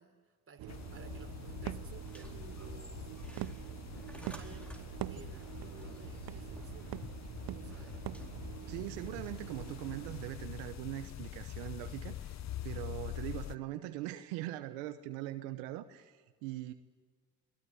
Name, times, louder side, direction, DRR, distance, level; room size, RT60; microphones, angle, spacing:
voice 1, 0.0-3.5 4.1-7.0 7.5-8.0 8.6-8.7, right 4 dB, 35° right, 5 dB, 3.9 m, -56 dB
sound 1, 0.6-10.4, right 17 dB, 65° right, 0.6 m, -44 dB
sound 2, 0.7-13.6, left 11 dB, 45° left, 0.7 m, -45 dB
sound 3, 2.0-10.1, equal, 5° left, 4.3 m, -58 dB
voice 2, 8.7-12.4 12.6-16.7, right 15 dB, 90° right, 9 dB, 1.0 m, -41 dB
22.0 x 18.5 x 9.8 m, 1.5 s
supercardioid pair, 70°, 38 cm